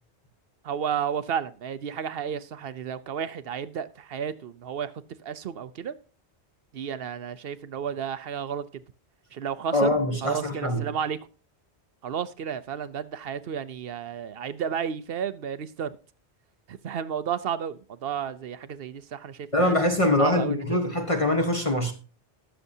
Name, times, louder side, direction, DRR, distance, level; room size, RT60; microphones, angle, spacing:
voice 1, 0.6-4.9 5.2-5.9 6.7-8.8 9.3-10.0 10.2-11.2 12.0-15.9 16.7-19.8 20.2-20.8 21.3-21.4, right 8 dB, 60° right, 0.8 m, -32 dB
voice 2, 9.7-10.9 19.5-21.9, left 1 dB, 30° left, 1.3 m, -23 dB
20.0 x 7.0 x 2.7 m
omnidirectional pair, 1.2 m